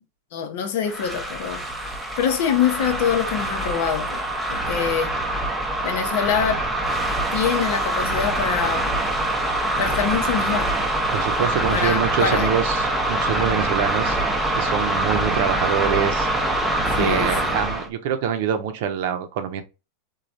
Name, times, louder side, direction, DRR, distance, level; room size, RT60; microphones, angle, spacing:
voice 1, 0.3-1.6 2.2-5.1 5.8-6.7 7.3-9.0 9.8-10.7 11.7-12.6 16.9-17.6, left 8 dB, 65° left, 0.7 m, -25 dB
sound 1, 0.8-17.9, right 1 dB, 10° right, 0.5 m, -24 dB
voice 2, 11.1-14.2 14.5-16.3 17.0-19.6, right 8 dB, 65° right, 0.6 m, -25 dB
3.1 x 2.3 x 2.6 m
supercardioid pair, 130°, 0 cm